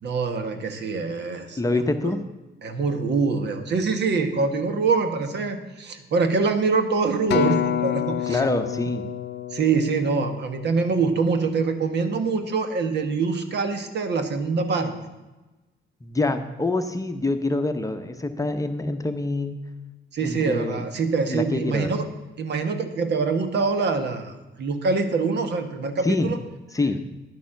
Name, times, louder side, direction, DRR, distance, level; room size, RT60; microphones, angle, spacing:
voice 1, 0.0-1.6 2.0-2.2 2.6-8.4 9.5-14.9 20.1-22.1 22.4-26.4, right 4 dB, 60° right, 7 dB, 1.4 m, -24 dB
voice 2, 1.6-2.2 8.3-9.0 16.0-19.6 20.2-20.8 21.3-21.9 26.0-26.3 26.7-27.0, left 2 dB, 15° left, 7 dB, 0.8 m, -25 dB
Acoustic guitar, 7.3-11.7 12.4-12.5, left 12 dB, 60° left, 0.6 m, -29 dB
10.5 x 7.0 x 6.4 m, 1.1 s
cardioid pair, 90°, 20 cm